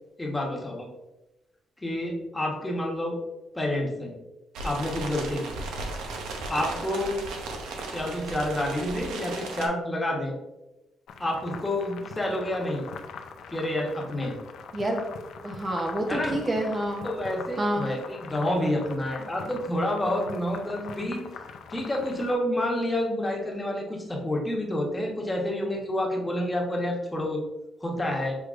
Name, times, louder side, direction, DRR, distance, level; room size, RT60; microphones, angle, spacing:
voice 1, 0.2-0.9 1.8-3.2 3.5-4.1 4.6-5.5 6.5-7.2 7.9-10.3 11.2-12.9 13.5-14.4 16.1-16.4 17.0-27.4 27.8-28.4, left 1 dB, 15° left, -1 dB, 1.1 m, -29 dB
sound 1, 4.5-9.7, right 2 dB, 90° right, 0.6 m, -35 dB
sound 2, 11.1-22.3, left 6 dB, 75° left, 0.4 m, -43 dB
voice 2, 14.7-15.1 15.4-17.0 17.6-17.9, right 1 dB, 30° right, 1 dB, 0.7 m, -28 dB
6.2 x 3.1 x 2.5 m, 1.0 s
cardioid pair, 90°, 0 cm